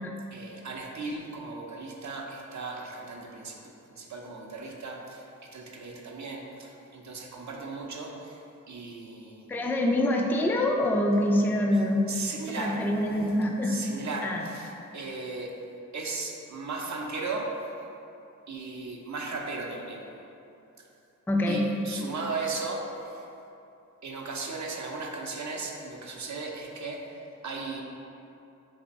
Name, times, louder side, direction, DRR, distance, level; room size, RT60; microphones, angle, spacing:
voice 1, 0.3-9.5 11.7-13.1 13.6-15.6 15.9-17.9 18.5-20.1 20.8-20.9 21.5-23.3 24.0-27.8, right 3 dB, 60° right, 0 dB, 0.6 m, -37 dB
voice 2, 9.5-12.0 12.6-13.8 14.2-14.4 21.3-21.7, left 1 dB, 5° left, 1 dB, 0.3 m, -25 dB
3.4 x 3.3 x 4.0 m, 2.8 s
wide cardioid pair, 65°, 33 cm